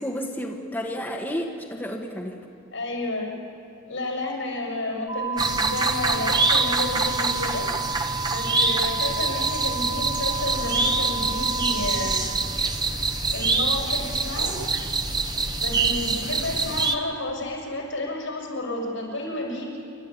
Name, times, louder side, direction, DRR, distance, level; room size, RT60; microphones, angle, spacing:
voice 1, 0.0-2.3, equal, 10° left, -1 dB, 1.4 m, -31 dB
voice 2, 2.7-3.3 3.9-7.7 8.3-12.2 13.0-14.6 15.6-19.8, left 2 dB, 75° left, -1 dB, 6.5 m, -31 dB
sound 1, 5.1-12.2, right 4 dB, 85° right, 3.4 m, -32 dB
sound 2, 5.4-16.9, right 3 dB, 20° right, 0.9 m, -25 dB
sound 3, 9.5-16.1, equal, 45° right, 4.6 m, -38 dB
29.0 x 12.5 x 8.4 m, 2.7 s
head